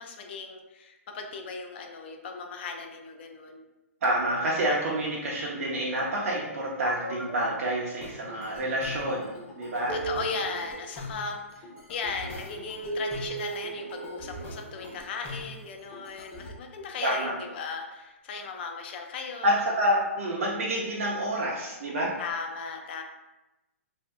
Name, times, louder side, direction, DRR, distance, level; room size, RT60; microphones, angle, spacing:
voice 1, 0.0-3.6 9.9-19.6 22.2-23.0, left 5 dB, 45° left, 3 dB, 0.5 m, -37 dB
voice 2, 4.0-9.3 9.6-10.0 17.0-17.4 19.4-22.1, right 1 dB, 65° right, -4 dB, 0.6 m, -28 dB
sound 1, 6.8-7.5 8.0-16.5, right 1 dB, 20° left, 0.8 m, -40 dB
sound 2, 12.9-15.4, right 5 dB, 10° right, 0.4 m, -37 dB
2.6 x 2.2 x 3.4 m, 1.0 s
hypercardioid pair, 145°, 8 cm